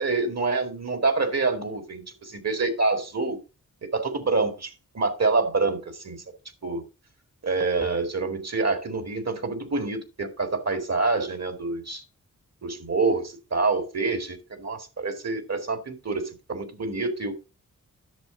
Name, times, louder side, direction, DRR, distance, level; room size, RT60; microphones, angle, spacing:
voice 1, 0.0-3.4 3.9-6.2 6.6-6.8 7.4-12.0 12.6-17.3, right 3 dB, 50° right, 2.2 m, -27 dB
10.5 x 6.7 x 3.8 m
cardioid pair, 50°, 33 cm